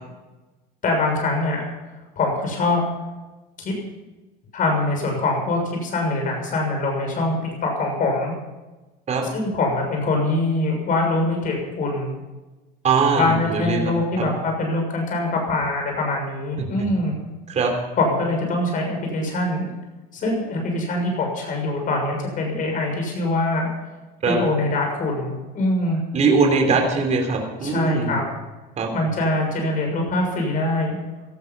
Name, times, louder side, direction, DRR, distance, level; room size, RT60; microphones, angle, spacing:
voice 1, 0.8-1.6 2.2-2.8 3.6-3.7 4.5-7.4 7.6-8.3 9.3-12.1 13.1-17.2 18.0-19.7 20.1-23.7 24.3-26.0 27.6-28.2 28.9-31.0, left 2 dB, 40° left, 1 dB, 6.6 m, -23 dB
voice 2, 12.8-13.9 14.2-14.3 17.5-17.7 24.2-24.4 26.1-28.1 28.8-28.9, right 4 dB, 35° right, 2 dB, 3.7 m, -21 dB
18.0 x 13.0 x 5.6 m, 1.1 s
cardioid pair, 140°, 21 cm